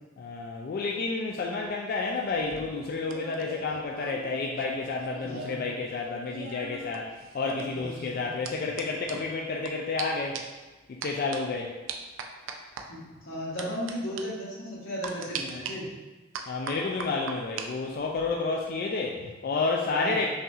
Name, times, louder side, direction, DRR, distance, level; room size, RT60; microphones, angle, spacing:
voice 1, 0.2-10.4 10.9-11.8 16.5-20.3, left 3 dB, 50° left, -1 dB, 0.3 m, -30 dB
sound 1, 2.3-5.7 6.0-9.7 10.0-10.1 10.3-10.6 11.0-11.4 11.9-12.8 13.6-13.9 14.2-14.3 15.0-15.7 16.3-17.7 18.0-18.3, right 6 dB, 85° right, 0.4 m, -40 dB
voice 2, 5.2-5.7 7.8-8.3 12.9-15.9 20.0-20.2, equal, 90° left, -7 dB, 1.4 m, -35 dB
5.5 x 2.7 x 2.4 m, 1.2 s
head